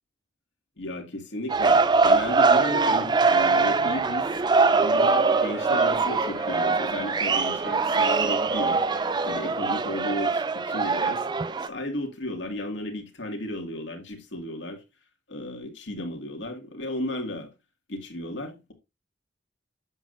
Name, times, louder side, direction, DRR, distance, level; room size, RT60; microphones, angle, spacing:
voice 1, 0.8-4.3 4.7-8.8 9.2-11.3 11.6-14.8 15.3-17.5 17.9-18.7, left 1 dB, 75° left, 2.2 m, -34 dB
sound 1, 1.5-11.0, equal, 5° right, 3.6 m, -46 dB
sound 2, 1.5-11.7, right 4 dB, 25° right, 0.4 m, -22 dB
7.9 x 7.8 x 2.6 m
head